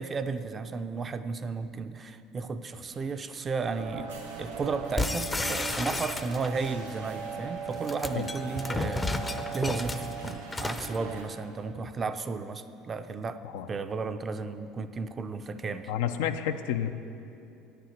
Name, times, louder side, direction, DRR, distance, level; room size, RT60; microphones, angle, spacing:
voice 1, 0.0-4.1 4.4-13.4 13.7-15.9, right 4 dB, 35° right, 10 dB, 0.5 m, -34 dB
sound 1, 2.6-11.2, right 3 dB, 85° right, 1.8 m, -49 dB
sound 2, 3.7-11.2, right 5 dB, 65° right, 1.0 m, -39 dB
sound 3, 5.0-6.7 7.7-11.0, left 2 dB, 15° left, 0.6 m, -32 dB
voice 2, 15.9-16.9, left 9 dB, 70° left, 8 dB, 0.5 m, -30 dB
9.3 x 6.7 x 7.8 m, 2.7 s
hypercardioid pair, 70°, 0 cm